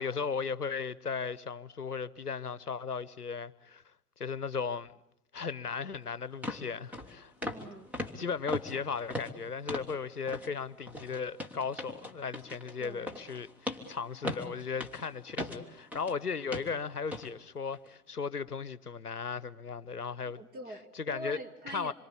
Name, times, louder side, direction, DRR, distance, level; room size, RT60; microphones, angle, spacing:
voice 1, 0.0-3.8 4.2-4.9 5.3-7.3 8.1-20.4 20.9-21.4 21.7-21.9, left 5 dB, 85° left, 0.9 m, -36 dB
sound 1, 5.8-5.9 6.4-6.7 6.9-7.1 7.4-7.7 7.9-10.0 10.3-10.5 10.9-16.2 16.5-16.7 17.1-17.3 17.7-17.9, left 1 dB, 5° right, 1.5 m, -39 dB
voice 2, 7.4-8.0 12.8-13.2 20.2-21.9, right 1 dB, 20° right, 2.1 m, -44 dB
26.5 x 23.0 x 8.6 m
figure-of-eight pair, 115°, 45 cm